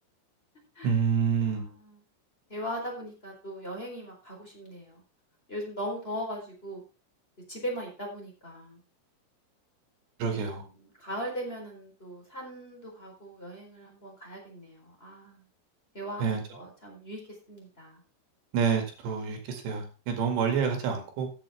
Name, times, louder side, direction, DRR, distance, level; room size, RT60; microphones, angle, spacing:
voice 1, 0.8-1.7 10.2-10.6 16.2-16.4 18.5-21.3, right 6 dB, 65° right, 4.0 m, -28 dB
voice 2, 1.4-2.0 2.5-5.0 5.5-6.8 7.5-8.8 10.8-15.4 15.9-17.2 17.5-18.0, equal, 15° left, 3.7 m, -39 dB
15.0 x 8.3 x 3.5 m
omnidirectional pair, 5.7 m